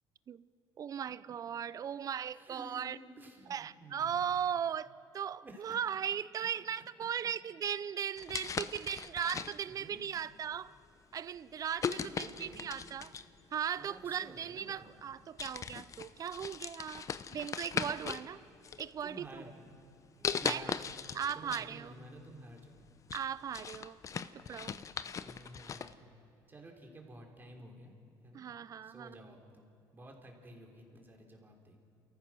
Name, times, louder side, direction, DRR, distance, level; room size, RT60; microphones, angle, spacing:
voice 1, 0.8-3.0 3.5-4.9 5.1-10.7 11.1-13.1 13.5-18.4 18.8-19.4 20.4-20.7 21.1-21.9 23.1-24.0 24.3-24.8 28.3-29.2, right 8 dB, 40° right, 0.6 m, -38 dB
voice 2, 2.2-4.4 5.4-5.8 8.2-8.7 9.6-10.0 12.0-12.6 13.8-14.9 19.0-19.7 20.2-20.8 21.3-22.9 25.2-26.1 26.5-27.9 28.2-28.5 28.8-29.7 29.9-31.8, right 1 dB, 20° right, 3.5 m, -52 dB
sound 1, 8.2-9.8 10.5-10.8 11.8-13.4 14.4-14.5 15.0-15.1 15.4-18.3 18.6-19.4 20.2-21.7 22.0-22.1 22.6-25.9, left 6 dB, 35° left, 0.7 m, -39 dB
29.5 x 14.5 x 6.2 m
cardioid pair, 110°, 9 cm